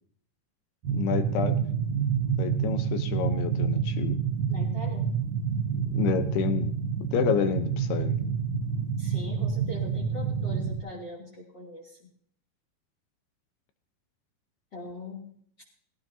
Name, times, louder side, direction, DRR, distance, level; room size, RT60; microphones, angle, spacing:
sound 1, 0.8-10.8, right 7 dB, 50° right, 2.7 m, -28 dB
voice 1, 0.9-1.6 2.4-4.2 5.7-6.7 7.1-8.3, left 7 dB, 75° left, 9 dB, 2.9 m, -29 dB
voice 2, 4.5-5.1 9.0-12.1 14.7-15.3, left 1 dB, 30° left, -4 dB, 3.0 m, -41 dB
19.0 x 17.0 x 2.8 m, 0.62 s
omnidirectional pair, 4.7 m